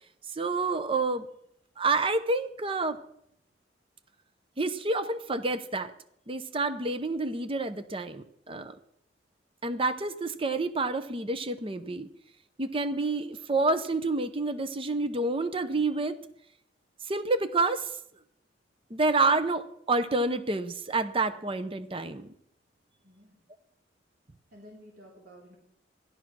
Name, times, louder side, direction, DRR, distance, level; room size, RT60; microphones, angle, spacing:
voice 1, 0.3-1.3 1.8-3.0 4.6-5.9 6.3-8.8 9.6-12.1 12.6-16.2 17.1-17.9 18.9-22.3, right 3 dB, 30° right, 11 dB, 0.8 m, -28 dB
voice 2, 23.0-23.4 24.5-25.6, equal, 50° right, -2 dB, 3.2 m, -52 dB
14.5 x 11.5 x 6.1 m, 0.73 s
head